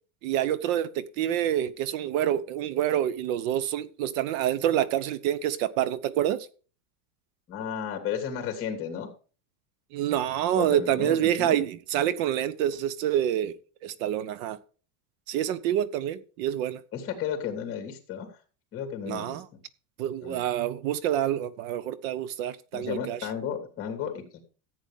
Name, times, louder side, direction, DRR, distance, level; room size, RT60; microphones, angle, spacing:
voice 1, 0.2-6.5 9.9-13.6 13.8-14.6 15.3-16.8 19.1-19.5 20.0-23.2, right 11 dB, 70° right, 0.9 m, -27 dB
voice 2, 7.5-9.1 10.5-11.6 16.9-18.3 18.7-19.4 20.2-20.4 22.7-24.4, left 8 dB, 30° left, 3.2 m, -33 dB
14.5 x 8.9 x 3.6 m
cardioid pair, 165°, 43 cm